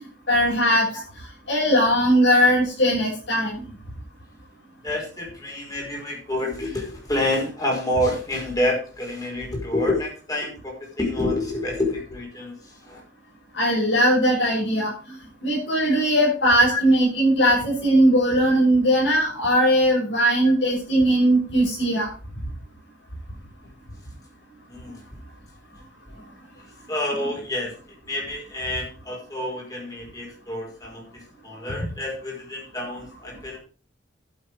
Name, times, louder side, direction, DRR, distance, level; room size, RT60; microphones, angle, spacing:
voice 1, 0.3-0.9 1.5-3.6 13.5-15.2 15.4-22.1, equal, 85° left, -8 dB, 6.9 m, -19 dB
voice 2, 4.8-13.0 16.7-16.8 24.7-25.0 26.9-27.7 28.1-33.6, left 1 dB, 20° left, -2 dB, 5.2 m, -28 dB
12.0 x 7.9 x 4.8 m, 0.37 s
head